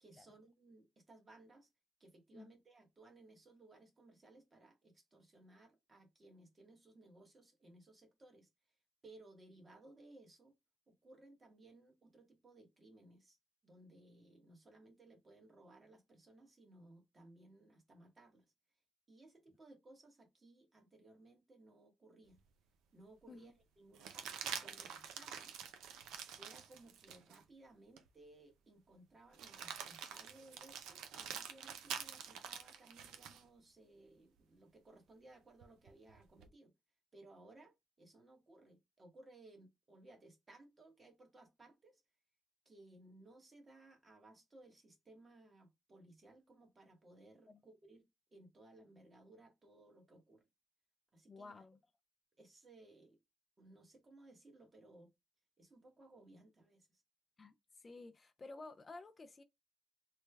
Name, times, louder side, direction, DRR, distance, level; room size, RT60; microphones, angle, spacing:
voice 1, 0.0-1.7 2.0-8.5 9.0-10.6 10.9-13.4 13.6-18.4 19.1-22.4 22.9-25.5 26.4-36.7 37.1-42.0 42.6-50.4 51.1-51.6 52.4-53.2 53.6-55.1 55.6-57.0, right 2 dB, 30° right, 1.1 m, -61 dB
sound 1, 22.4-22.5 23.9-27.4 28.0-28.1 29.3-33.4 35.6-36.5, right 8 dB, 90° right, 0.5 m, -47 dB
voice 2, 51.3-51.8 57.4-59.4, left 3 dB, 30° left, 0.4 m, -53 dB
3.1 x 2.2 x 3.2 m
cardioid pair, 90°, 0 cm